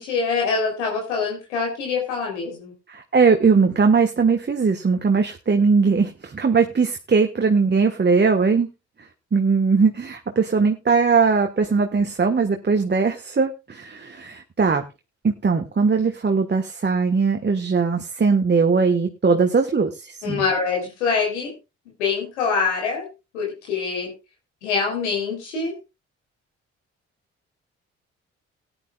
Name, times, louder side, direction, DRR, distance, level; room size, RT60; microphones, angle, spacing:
voice 1, 0.0-2.7 20.2-21.5 22.0-23.1 23.3-24.1 24.6-25.7, left 5 dB, 90° left, 0 dB, 3.4 m, -24 dB
voice 2, 2.9-8.7 9.3-14.8 15.2-20.4, right 5 dB, 30° right, 5 dB, 1.4 m, -20 dB
18.5 x 10.0 x 2.3 m, 0.26 s
hypercardioid pair, 45°, 34 cm